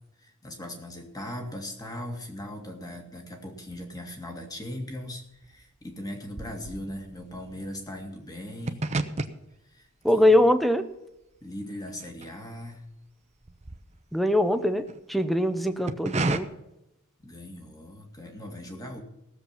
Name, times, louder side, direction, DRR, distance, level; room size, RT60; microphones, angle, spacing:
voice 1, 0.2-8.8 9.6-9.9 10.1-10.2 11.4-12.9 17.2-19.0, left 1 dB, 20° left, 3 dB, 2.1 m, -39 dB
sound 1, 4.8-12.9 13.2-15.0 15.6-16.4, right 2 dB, 30° right, 0.8 m, -35 dB
voice 2, 10.0-10.8 14.1-14.8 15.1-16.5, left 1 dB, ahead, 9 dB, 0.8 m, -22 dB
17.5 x 7.5 x 5.9 m, 0.90 s
head